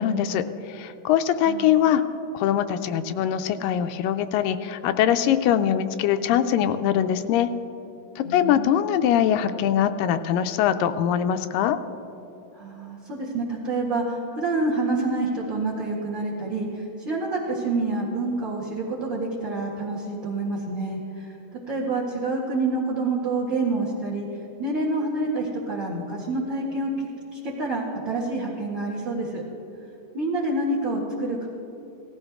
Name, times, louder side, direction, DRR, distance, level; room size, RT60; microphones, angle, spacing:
voice 1, 0.0-2.0 2.3-7.5 8.2-11.8, left 10 dB, 85° left, 10 dB, 2.3 m, -22 dB
voice 2, 8.2-8.8 12.5-21.4 21.7-24.3 24.6-29.4 30.1-31.5, right 2 dB, 45° right, -7 dB, 2.0 m, -27 dB
17.5 x 13.5 x 3.6 m, 3.0 s
omnidirectional pair, 3.9 m